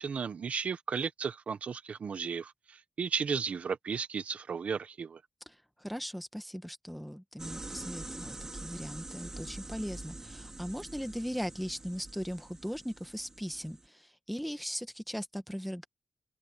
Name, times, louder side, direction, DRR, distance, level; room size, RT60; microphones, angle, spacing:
voice 1, 0.0-2.5 3.0-5.2, right 6 dB, 65° right, 1.3 m, -34 dB
voice 2, 5.8-15.9, equal, ahead, 1.5 m, -39 dB
sound 1, 7.4-13.9, right 2 dB, 20° right, 5.3 m, -45 dB
wide cardioid pair, 140°, 2 cm